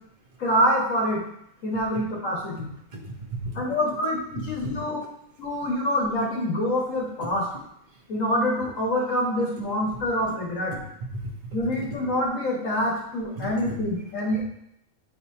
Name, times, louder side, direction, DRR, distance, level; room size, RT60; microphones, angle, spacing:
voice 1, 0.4-1.2 1.6-2.7 3.6-5.0 5.4-7.5 8.1-10.7 11.5-14.4, equal, 75° left, -4 dB, 1.8 m, -26 dB
voice 2, 2.9-3.6 4.3-4.9 7.9-8.0 11.1-11.6 13.4-13.8, right 1 dB, 40° right, -1 dB, 1.1 m, -35 dB
7.2 x 4.7 x 2.8 m, 0.74 s
omnidirectional pair, 1.4 m